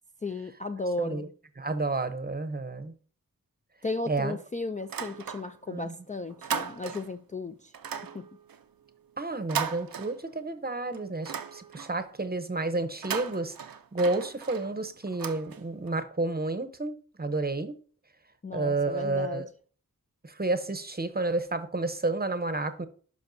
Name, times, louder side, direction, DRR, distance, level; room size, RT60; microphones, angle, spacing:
voice 1, 0.2-1.3 3.8-7.7 8.1-8.2 18.4-19.5, left 3 dB, 25° left, 0.4 m, -35 dB
voice 2, 1.6-2.9 4.1-4.4 5.7-5.9 9.2-13.5 13.9-17.7 18.5-19.5 20.2-22.9, right 2 dB, 30° right, 0.7 m, -30 dB
sound 1, 4.8-5.8 6.1-7.2 7.7-10.6 10.9-12.1 12.9-16.0, right 7 dB, 85° right, 0.5 m, -37 dB
11.5 x 5.2 x 2.7 m
wide cardioid pair, 60°, 34 cm